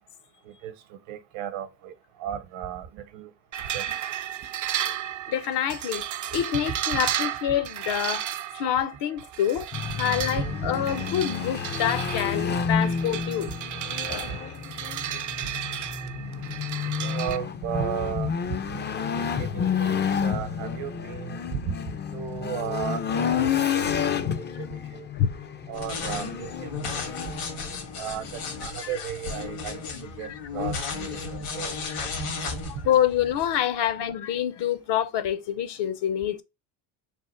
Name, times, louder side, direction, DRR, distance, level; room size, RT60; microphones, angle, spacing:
voice 1, 0.4-1.9 2.2-3.3 3.7-3.8 6.9-7.0 10.4-10.7 13.4-13.5 14.2-14.4 16.0-16.4 17.0-18.6 19.1-21.7 22.1-25.1 25.7-27.4 28.0-31.8, right 9 dB, 70° right, 0.9 m, -35 dB
sound 1, 3.5-17.4, right 11 dB, 40° right, 0.4 m, -33 dB
voice 2, 5.3-6.1 6.3-9.7 10.0-13.5 14.1-14.3 24.3-24.4 25.1-25.3 28.8-28.9 30.2-30.3 31.9-32.1 32.8-36.4, left 10 dB, 55° left, 0.7 m, -27 dB
sound 2, 9.7-28.7, left 7 dB, 25° left, 0.4 m, -30 dB
sound 3, 25.7-33.6, left 5 dB, 80° left, 1.7 m, -34 dB
3.5 x 2.5 x 4.4 m
supercardioid pair, 80°, 49 cm